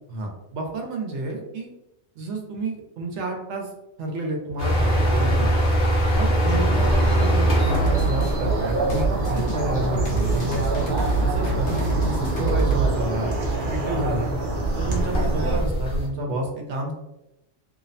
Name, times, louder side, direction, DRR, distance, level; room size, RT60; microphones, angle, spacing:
voice 1, 0.1-1.7 2.2-3.7 4.0-5.5 6.1-10.6 11.2-14.3 14.8-16.9, right 2 dB, 90° right, 1 dB, 0.9 m, -30 dB
sound 1, 4.6-16.1, right 1 dB, 55° left, 1.0 m, -24 dB
sound 2, 6.4-15.6, right 2 dB, 55° right, 0.7 m, -28 dB
sound 3, 7.7-12.9, right 3 dB, 85° left, 1.0 m, -26 dB
2.7 x 2.0 x 2.5 m, 0.92 s
omnidirectional pair, 1.2 m